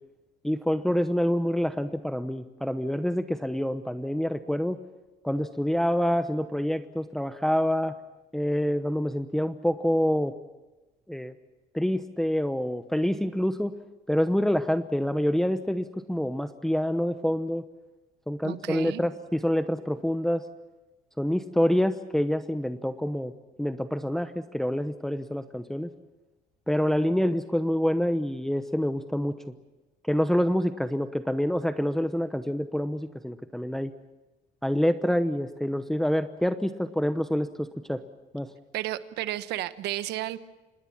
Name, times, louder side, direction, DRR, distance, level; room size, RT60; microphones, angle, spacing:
voice 1, 0.4-4.8 5.2-7.9 8.3-10.3 11.1-11.3 11.7-13.7 14.1-17.6 18.3-20.4 21.2-23.3 23.6-25.9 26.7-29.4 30.1-33.9 34.6-38.0 38.3-38.5, equal, ahead, 9 dB, 0.9 m, -27 dB
voice 2, 18.4-19.0 38.7-40.4, right 14 dB, 80° right, 13 dB, 1.1 m, -32 dB
26.5 x 20.0 x 7.3 m, 1.1 s
cardioid pair, 110°, 17 cm